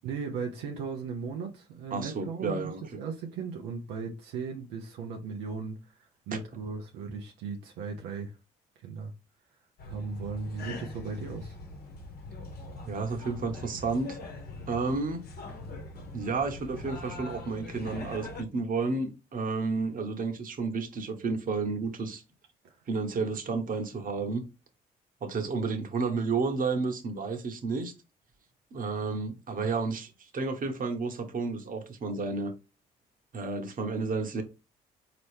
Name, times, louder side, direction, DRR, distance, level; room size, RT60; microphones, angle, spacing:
voice 1, 0.0-6.0 6.3-8.3 8.8-9.1 9.9-11.6 22.6-22.8, right 5 dB, 90° right, 0.7 m, -37 dB
voice 2, 1.9-2.8 10.7-10.8 12.9-14.2 14.7-15.3 16.1-22.2 22.9-24.4 25.2-27.9 28.7-32.5 33.3-34.4, right 4 dB, 50° right, 1.1 m, -31 dB
sound 1, 9.8-18.4, left 2 dB, 65° left, 1.1 m, -42 dB
4.1 x 3.0 x 3.2 m
supercardioid pair, 60°, 18 cm